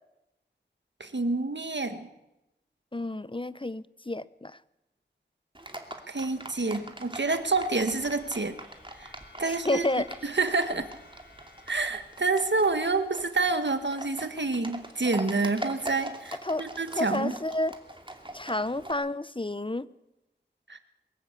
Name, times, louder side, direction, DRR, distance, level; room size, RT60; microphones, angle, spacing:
voice 1, 1.0-2.1 6.1-8.5 9.0-9.1 9.4-9.8 10.2-10.9 11.7-17.3 20.7-20.8, right 3 dB, 75° right, 9 dB, 1.7 m, -28 dB
voice 2, 2.9-4.6 9.4-10.2 16.4-16.6 17.0-17.7 18.3-19.9, left 1 dB, 30° left, 17 dB, 0.7 m, -30 dB
Livestock farm animals working animals, 5.5-18.9, right 1 dB, 25° right, 2.7 m, -43 dB
sound 1, 7.5-12.7, left 2 dB, 60° left, 7.6 m, -56 dB
23.0 x 14.0 x 8.3 m, 0.92 s
wide cardioid pair, 50°, 18 cm